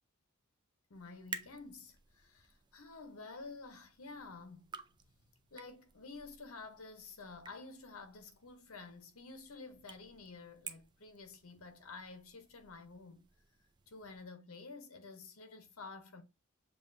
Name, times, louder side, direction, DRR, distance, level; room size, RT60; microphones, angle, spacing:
voice 1, 0.9-4.7 5.5-13.3 13.9-16.2, left 3 dB, 75° left, 0.9 m, -51 dB
sound 1, 0.9-14.3, right 5 dB, 20° right, 0.3 m, -54 dB
7.1 x 2.4 x 2.6 m
head